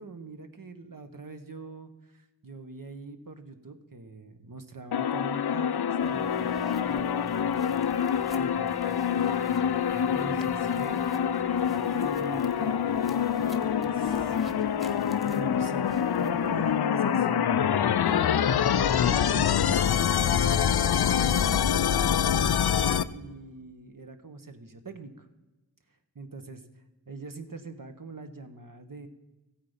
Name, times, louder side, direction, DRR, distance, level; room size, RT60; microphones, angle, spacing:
voice 1, 0.0-7.8 8.3-11.0 11.9-12.7 13.4-17.5 18.1-18.4 18.8-22.3 22.8-25.3 26.1-26.6 27.1-29.1, right 3 dB, 60° right, 7 dB, 1.2 m, -43 dB
sound 1, 4.9-23.0, left 8 dB, 85° left, 0.5 m, -26 dB
sound 2, 6.0-16.8, equal, ahead, 1.1 m, -47 dB
Wind instrument woodwind instrument, 6.1-12.1, left 3 dB, 15° left, 0.5 m, -42 dB
14.5 x 8.6 x 5.6 m, 1.1 s
wide cardioid pair, 55°, 37 cm